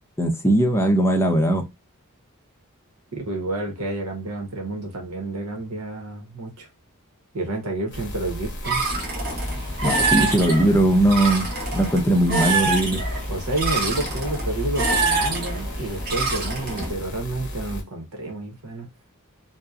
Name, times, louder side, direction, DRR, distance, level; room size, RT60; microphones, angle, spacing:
voice 1, 0.2-1.6 9.8-13.0, right 1 dB, 10° left, 0.5 m, -19 dB
voice 2, 3.1-6.7 7.3-8.8 13.3-18.9, right 2 dB, 80° right, 0.8 m, -30 dB
sound 1, 7.9-17.8, equal, 55° left, 0.7 m, -35 dB
sound 2, 8.6-16.9, right 3 dB, 45° right, 0.9 m, -26 dB
2.7 x 2.0 x 2.3 m
head